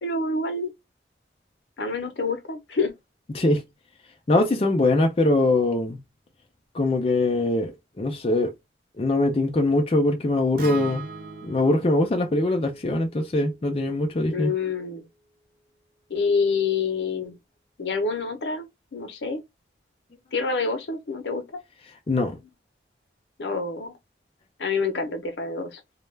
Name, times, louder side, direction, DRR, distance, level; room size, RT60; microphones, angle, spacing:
voice 1, 0.0-0.7 1.8-2.9 14.3-15.1 16.1-17.4 17.8-19.4 20.3-21.4 23.4-23.9 24.6-25.8, left 4 dB, 80° left, 0.6 m, -27 dB
voice 2, 3.3-3.7 4.3-6.0 6.7-8.5 9.0-11.1 11.4-14.5 22.1-22.4, left 2 dB, 30° left, 0.4 m, -22 dB
Acoustic guitar, 10.6-14.8, right 4 dB, 50° right, 0.5 m, -41 dB
2.3 x 2.1 x 3.1 m
head